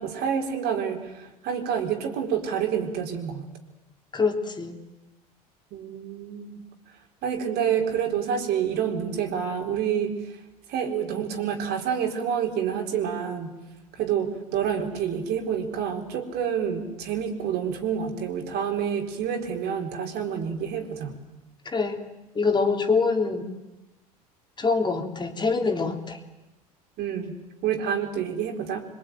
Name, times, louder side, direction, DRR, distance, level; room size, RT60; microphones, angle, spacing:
voice 1, 0.0-3.5 5.7-6.5 7.2-10.2 10.7-13.5 13.9-21.2 27.0-27.3 27.6-28.8, right 8 dB, 55° right, 4 dB, 4.4 m, -28 dB
voice 2, 4.1-4.8 21.6-22.0 22.3-23.5 24.6-26.2, left 4 dB, 20° left, 3 dB, 3.4 m, -24 dB
25.0 x 22.5 x 9.3 m, 1.0 s
hypercardioid pair, 80°, 20 cm